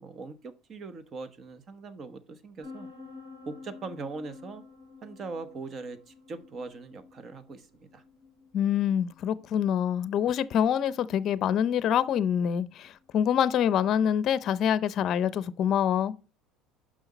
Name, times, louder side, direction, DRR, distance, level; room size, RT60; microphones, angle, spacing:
voice 1, 0.0-2.9 3.5-4.6 5.0-8.0, right 4 dB, 40° right, 1.0 m, -41 dB
sound 1, 2.6-14.1, left 4 dB, 75° right, 3.8 m, -51 dB
voice 2, 8.5-16.1, left 9 dB, 50° left, 0.5 m, -26 dB
6.3 x 5.7 x 4.1 m
supercardioid pair, 100°, 0 cm